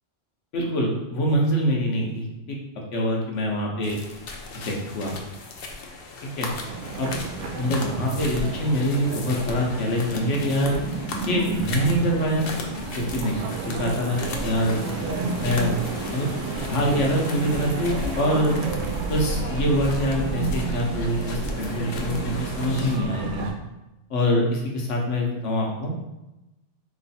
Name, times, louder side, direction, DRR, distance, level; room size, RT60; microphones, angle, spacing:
voice 1, 0.5-2.6 2.9-4.0 4.5-5.1 6.2-6.5 7.0-7.1 7.5-10.8 11.3-12.5 12.9-14.8 15.4-15.7 16.1-16.3 16.7-18.5 19.1-23.5 24.1-25.9, equal, 75° left, -1 dB, 1.2 m, -25 dB
sound 1, 3.8-23.0, left 3 dB, 60° left, 0.7 m, -36 dB
sound 2, 6.7-23.5, right 4 dB, 85° right, 1.0 m, -31 dB
3.2 x 3.1 x 4.1 m, 0.97 s
omnidirectional pair, 1.3 m